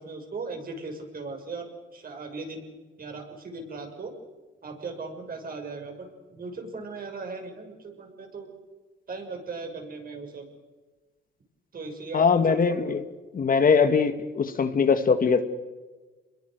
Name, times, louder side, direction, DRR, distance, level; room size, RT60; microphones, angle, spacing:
voice 1, 0.0-2.7 3.0-4.1 4.6-8.5 9.1-10.5 11.7-12.9, right 3 dB, 45° right, 3 dB, 6.5 m, -38 dB
voice 2, 12.1-13.0 13.3-15.4, left 5 dB, 45° left, 9 dB, 1.9 m, -21 dB
26.5 x 22.0 x 6.7 m, 1.3 s
cardioid pair, 90°, 20 cm